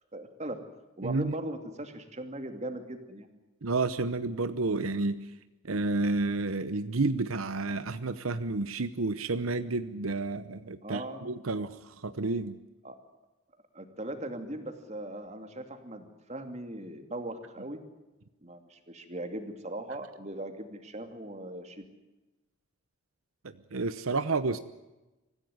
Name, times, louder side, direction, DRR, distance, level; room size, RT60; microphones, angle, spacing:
voice 1, 0.1-0.6 1.0-3.3 10.8-11.3 12.8-13.0 13.7-17.8 18.4-21.8, right 1 dB, 30° right, 7 dB, 2.6 m, -39 dB
voice 2, 1.0-1.4 3.6-5.2 5.6-12.6 23.7-24.6, right 3 dB, 80° right, 12 dB, 0.9 m, -30 dB
24.5 x 15.5 x 9.5 m, 1.1 s
head